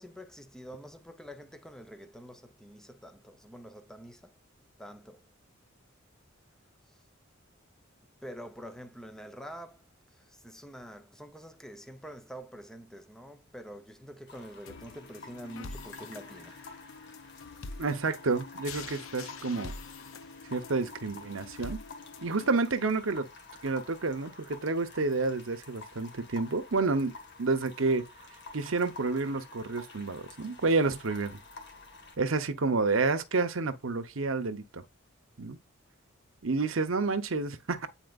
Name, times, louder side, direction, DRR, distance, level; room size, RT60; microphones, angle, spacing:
voice 1, 0.0-4.3 4.8-5.2 8.2-9.8 10.4-16.5, equal, 5° left, 0.7 m, -46 dB
sound 1, 14.3-32.2, left 3 dB, 55° left, 1.7 m, -50 dB
sound 2, 14.7-22.7, left 4 dB, 75° left, 0.7 m, -45 dB
voice 2, 17.8-19.7 20.5-21.8 22.2-23.3 23.6-28.0 28.5-31.4 32.2-34.8 35.4-35.6 36.4-37.9, right 3 dB, 70° right, 0.8 m, -29 dB
9.1 x 4.3 x 2.4 m
head